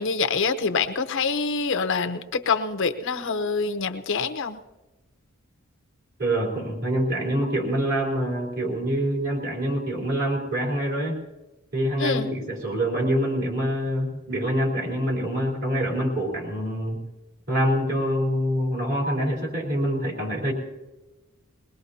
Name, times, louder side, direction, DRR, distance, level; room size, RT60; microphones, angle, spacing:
voice 1, 0.0-4.6 12.0-12.3, left 4 dB, 60° left, 6 dB, 0.8 m, -25 dB
voice 2, 6.2-11.2 11.7-17.0 17.5-20.5, equal, 45° right, -1 dB, 4.0 m, -25 dB
21.5 x 20.0 x 2.8 m, 1.1 s
head